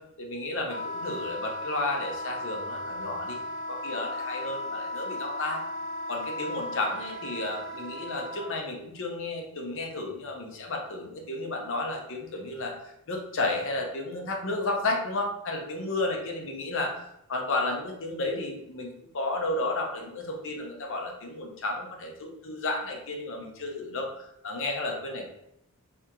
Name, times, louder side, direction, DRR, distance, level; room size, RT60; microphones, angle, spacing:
voice 1, 0.2-3.4 3.7-5.6 6.1-25.3, left 2 dB, 60° left, 1 dB, 0.8 m, -32 dB
Wind instrument woodwind instrument, 0.6-8.5, left 1 dB, 35° left, 0.5 m, -36 dB
3.6 x 3.5 x 3.0 m, 0.78 s
head